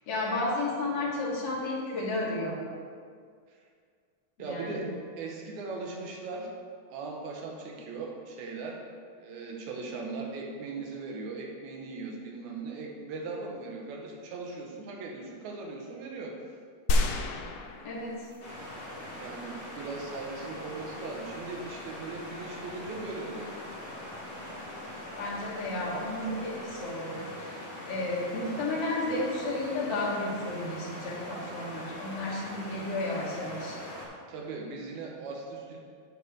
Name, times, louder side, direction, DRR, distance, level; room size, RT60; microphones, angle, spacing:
voice 1, 0.1-2.6 4.4-4.9 17.8-18.2 25.2-33.8, left 2 dB, 60° left, -5 dB, 2.8 m, -32 dB
voice 2, 4.4-4.9 5.2-6.5 6.9-8.9 9.1-16.5 19.2-23.5 34.3-35.8, right 3 dB, 85° right, 0 dB, 2.4 m, -39 dB
sound 1, 16.9-18.6 19.2-19.3, left 2 dB, 80° left, 1.9 m, -29 dB
sound 2, 18.4-34.0, left 1 dB, 40° left, 2.3 m, -42 dB
9.1 x 4.3 x 6.3 m, 2.1 s
omnidirectional pair, 3.3 m